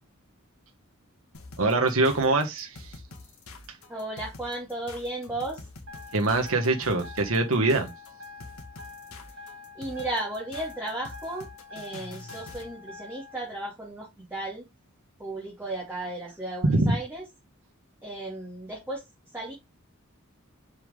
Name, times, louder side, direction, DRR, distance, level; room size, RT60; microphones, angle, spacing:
sound 1, 1.3-12.7, left 3 dB, 85° left, 1.9 m, -45 dB
voice 1, 1.6-2.9 6.1-7.9 16.6-16.9, right 2 dB, 75° right, 1.4 m, -23 dB
voice 2, 3.9-5.7 9.7-14.7 15.2-17.2 18.0-19.5, right 1 dB, 10° right, 2.5 m, -35 dB
sound 2, 5.9-13.5, left 3 dB, 60° right, 1.3 m, -46 dB
6.9 x 5.5 x 3.7 m
head